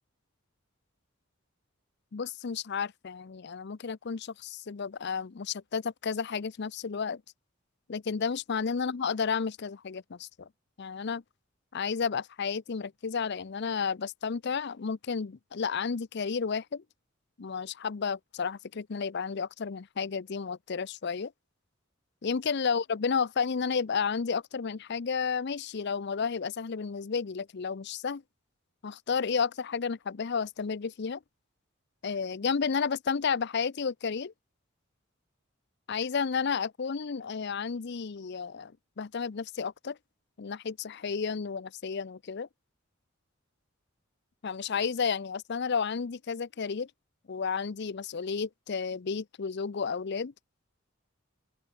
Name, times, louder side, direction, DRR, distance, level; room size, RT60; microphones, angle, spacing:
voice 1, 2.1-7.2 7.9-10.5 10.8-11.2 11.7-16.8 17.4-21.3 22.2-28.2 28.8-31.2 32.0-34.3 35.9-40.0 40.4-42.5 44.4-46.9 47.3-50.3, left 5 dB, 55° left, 0.5 m, -32 dB
open air
head